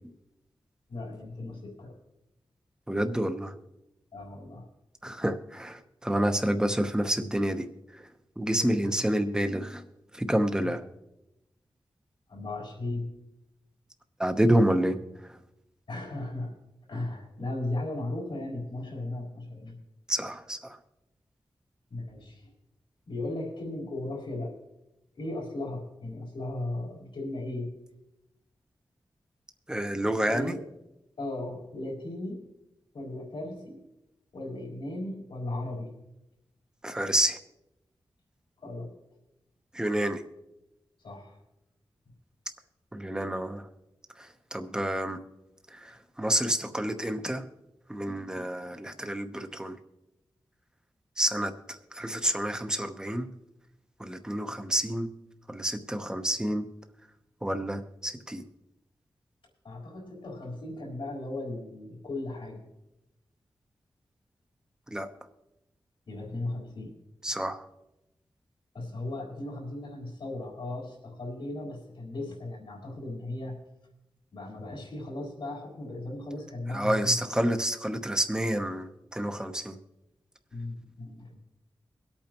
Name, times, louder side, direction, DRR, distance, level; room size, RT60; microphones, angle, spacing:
voice 1, 0.9-1.9 4.1-4.7 8.6-9.0 10.6-10.7 12.3-13.1 15.9-16.5 16.9-19.8 21.9-22.5 23.1-24.6 25.1-27.7 30.2-30.6 31.2-32.4 32.9-33.9 34.3-35.9 38.6-38.9 41.0-41.4 59.6-62.6 66.1-66.9 68.7-73.6 74.3-77.2 80.5-81.4, left 2 dB, 85° left, -2 dB, 4.1 m, -36 dB
voice 2, 2.9-3.5 5.0-7.7 8.4-9.8 10.1-10.8 14.2-15.0 20.1-20.8 29.7-30.6 36.8-37.4 39.7-40.2 42.9-43.6 44.2-45.2 45.7-47.4 47.9-49.8 51.2-53.3 54.0-55.1 55.5-56.6 57.4-58.5 64.9-65.1 67.2-67.6 76.7-79.8, right 1 dB, 10° right, 7 dB, 0.9 m, -28 dB
23.5 x 8.7 x 3.0 m, 0.92 s
wide cardioid pair, 115°, 8 cm